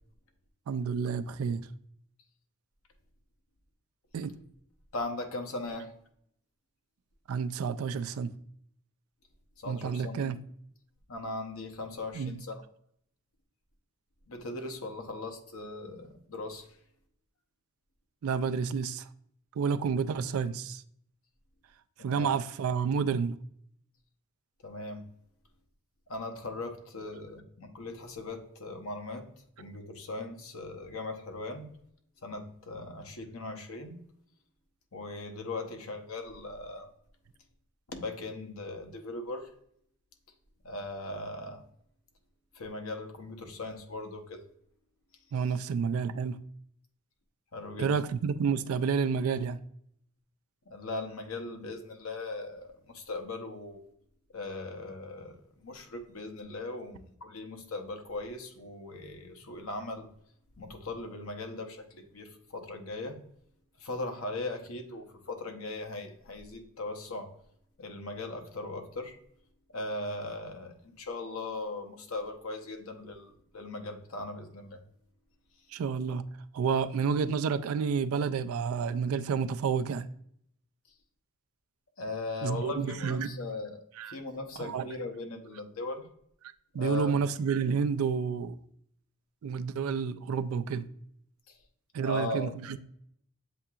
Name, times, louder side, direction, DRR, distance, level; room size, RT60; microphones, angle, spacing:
voice 1, 0.7-1.7 4.1-4.3 7.3-8.3 9.7-10.4 12.1-12.3 18.2-19.1 19.6-20.8 22.0-23.4 45.3-46.4 47.8-49.6 75.7-76.2 76.5-80.1 82.4-83.3 84.0-84.2 84.6-84.9 86.7-88.6 89.4-90.9 91.9-92.8, right 6 dB, 80° right, 0.3 m, -30 dB
voice 2, 4.9-5.9 9.6-10.3 11.1-12.6 14.3-16.8 22.0-22.4 24.6-25.1 26.1-29.3 29.6-31.7 32.2-34.0 34.9-36.9 37.9-39.5 40.6-41.6 42.5-44.4 47.5-47.9 50.7-53.8 54.3-60.1 60.6-63.2 63.8-67.3 67.8-69.2 69.7-74.8 82.0-86.1 86.8-87.3 91.5-91.6 92.0-92.6, left 2 dB, 75° left, 0.8 m, -39 dB
7.7 x 2.8 x 2.3 m
head